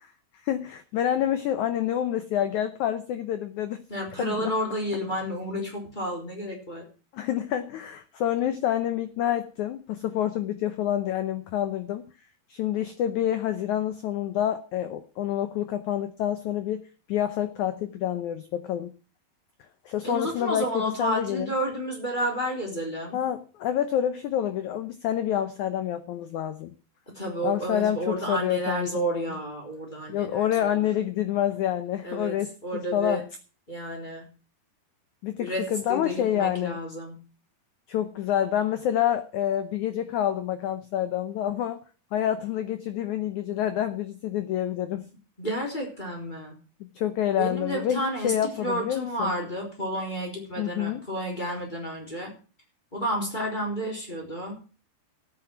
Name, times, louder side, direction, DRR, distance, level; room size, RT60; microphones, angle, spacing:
voice 1, 0.4-3.8 4.2-4.5 7.1-12.0 12.5-16.8 17.1-18.9 19.8-21.5 23.1-26.7 27.4-29.3 30.1-33.2 35.2-36.8 37.9-41.8 42.1-45.1 46.8-49.3 50.6-51.0, left 11 dB, 85° left, 10 dB, 1.7 m, -28 dB
voice 2, 3.9-6.9 20.0-23.2 27.1-30.8 32.0-32.4 32.6-33.2 33.7-34.3 35.4-37.2 45.4-46.6 47.4-52.3 52.9-54.6, right 1 dB, 10° left, 0 dB, 3.6 m, -31 dB
13.5 x 8.9 x 5.9 m, 0.37 s
omnidirectional pair, 4.5 m